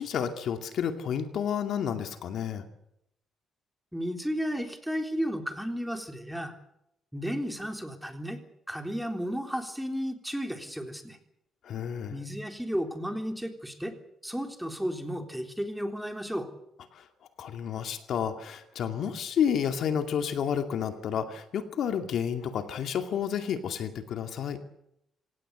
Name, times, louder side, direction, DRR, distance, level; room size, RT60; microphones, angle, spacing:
voice 1, 0.0-2.7 11.6-12.2 16.9-17.1 17.4-24.6, left 8 dB, 70° left, 7 dB, 2.4 m, -30 dB
voice 2, 3.9-6.5 7.1-8.4 8.7-11.2 12.1-13.9 14.2-16.5, equal, ahead, 5 dB, 3.7 m, -33 dB
26.0 x 18.0 x 8.1 m, 0.80 s
cardioid pair, 90°, 0 cm